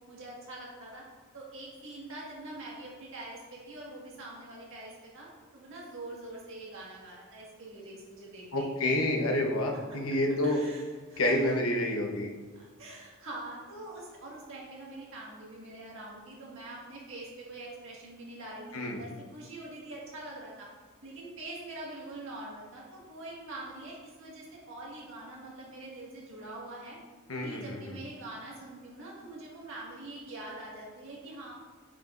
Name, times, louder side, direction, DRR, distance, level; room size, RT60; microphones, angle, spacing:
voice 1, 0.1-1.0 1.3-9.0 9.9-10.0 10.4-11.5 12.5-20.7 21.0-27.0 27.4-31.5, right 2 dB, 65° right, -5 dB, 1.8 m, -44 dB
voice 2, 8.5-10.6 11.2-12.3 18.7-19.0 27.3-28.0, left 1 dB, 70° left, 1 dB, 1.0 m, -29 dB
8.7 x 5.1 x 2.6 m, 1.4 s
head